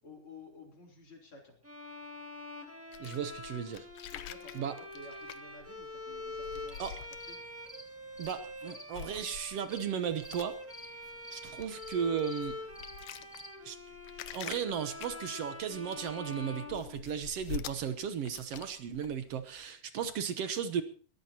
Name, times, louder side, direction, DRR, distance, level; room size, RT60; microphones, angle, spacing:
voice 1, 0.0-1.6 4.1-7.4, left 3 dB, 40° left, 0 dB, 4.2 m, -53 dB
Bowed string instrument, 1.6-17.5, left 2 dB, 5° right, 1.5 m, -45 dB
sound 1, 2.9-7.7 8.1-8.6 8.9-19.7, left 11 dB, 70° left, 1.9 m, -47 dB
voice 2, 3.0-3.9 4.6-4.8 6.8-7.0 8.2-10.6 11.3-12.6 13.6-13.8 14.3-20.8, right 7 dB, 65° right, 10 dB, 1.7 m, -35 dB
sound 2, 6.5-13.5, left 1 dB, 10° left, 0.7 m, -52 dB
22.0 x 14.5 x 2.9 m, 0.40 s
omnidirectional pair, 3.8 m